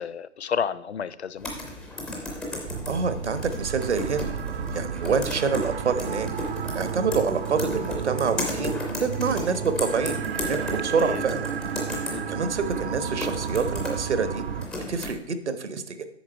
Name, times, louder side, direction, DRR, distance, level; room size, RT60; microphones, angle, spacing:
voice 1, 0.0-1.5 10.9-11.2 12.1-12.5, left 7 dB, 70° left, 17 dB, 0.6 m, -31 dB
sound 1, 1.4-15.1, left 1 dB, ahead, 0.4 m, -35 dB
sound 2, 2.7-14.7, right 8 dB, 55° right, 0.6 m, -32 dB
voice 2, 2.9-4.3 4.7-6.3 6.7-11.5 12.1-14.4 14.9-16.0, right 5 dB, 75° right, 10 dB, 1.1 m, -27 dB
8.4 x 6.1 x 4.5 m, 0.82 s
figure-of-eight pair, 130°, 35 cm